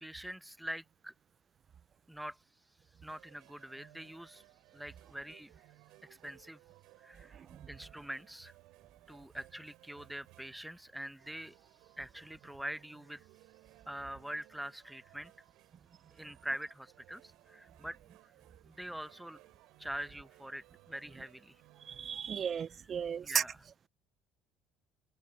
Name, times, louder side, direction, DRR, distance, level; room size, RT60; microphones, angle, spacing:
voice 1, 0.0-1.1 2.1-2.4 3.0-4.4 4.7-5.5 6.2-6.6 7.0-7.4 7.7-8.5 9.1-11.6 12.0-13.2 13.9-15.3 16.1-18.0 18.7-19.4 19.8-21.5 23.2-23.6, right 1 dB, 5° right, 1.0 m, -44 dB
sound 1, 3.1-22.2, right 20 dB, 65° right, 6.8 m, -62 dB
voice 2, 21.9-23.4, right 7 dB, 45° right, 0.4 m, -34 dB
hypercardioid pair, 65°, 0 cm